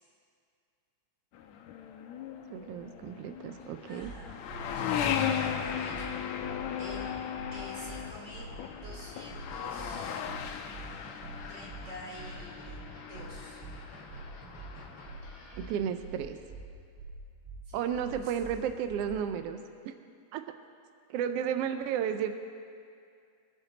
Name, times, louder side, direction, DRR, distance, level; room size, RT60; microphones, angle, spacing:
sound 1, 1.3-15.7, left 8 dB, 75° left, 2.0 m, -37 dB
voice 1, 2.5-4.1 15.6-16.4 17.7-19.6 19.8-19.9 20.3-20.4 21.1-22.3, right 8 dB, 80° right, 8 dB, 1.3 m, -33 dB
voice 2, 3.6-4.4 5.4-6.2 6.8-7.1 7.5-10.2 11.5-12.8 13.1-13.6 17.7-18.3, equal, 50° right, -4 dB, 4.0 m, -47 dB
sound 2, 4.0-4.2 4.5-4.6 5.0-5.1 5.4-5.6 5.9-6.1 6.4-6.6 6.9-7.0 7.4-7.5 7.8-8.0 8.3-8.5 8.8-9.0 9.3-9.4 9.8-9.9 10.2-10.4 10.7-10.9 11.2-11.4 11.7-11.8 12.2-12.3 12.6-12.8 13.1-13.3 13.6-13.8 14.1-14.2 14.6-14.7 15.0-15.2 15.5-15.7 16.0-16.2 16.5-16.6 17.0-17.1 17.4-17.6 17.9-18.1 18.4-18.6 18.9-19.0, right 5 dB, 25° right, 2.7 m, -45 dB
sound 3, 9.3-15.9, left 1 dB, 40° left, 2.0 m, -52 dB
24.5 x 9.0 x 4.0 m, 2.3 s
omnidirectional pair, 3.4 m